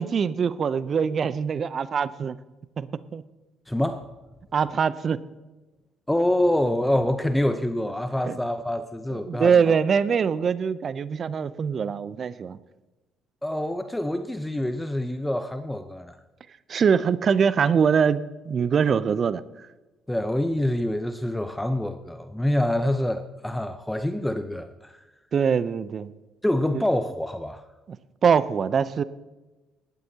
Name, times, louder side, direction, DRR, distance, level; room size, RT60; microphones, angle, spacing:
voice 1, 0.0-2.4 2.8-2.9 3.1-3.2 4.5-5.2 8.2-8.4 9.1-12.6 16.7-19.4 25.3-26.1 26.7-26.8 28.2-29.0, right 6 dB, 50° right, 16 dB, 0.6 m, -23 dB
voice 2, 3.7-4.1 6.1-9.8 13.4-16.2 20.1-25.0 26.4-27.6, left 1 dB, 10° left, 9 dB, 0.8 m, -26 dB
18.0 x 12.0 x 2.9 m, 1.1 s
hypercardioid pair, 55°, 0 cm